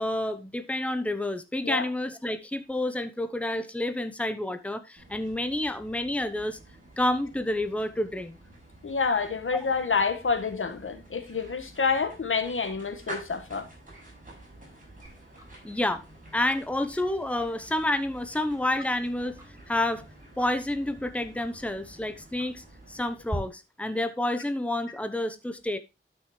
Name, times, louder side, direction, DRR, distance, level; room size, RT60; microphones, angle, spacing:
voice 1, 0.0-6.6 7.0-8.4 9.5-9.6 15.6-16.0 16.3-19.4 19.7-20.1 20.4-25.8, left 1 dB, 5° left, 1.0 m, -29 dB
sound 1, 5.0-23.6, right 1 dB, 40° right, 6.2 m, -49 dB
voice 2, 8.8-13.7, left 5 dB, 75° left, 1.6 m, -28 dB
Tick-tock, 15.0-23.4, right 1 dB, 15° right, 3.2 m, -47 dB
12.0 x 6.4 x 3.2 m
wide cardioid pair, 75°, 21 cm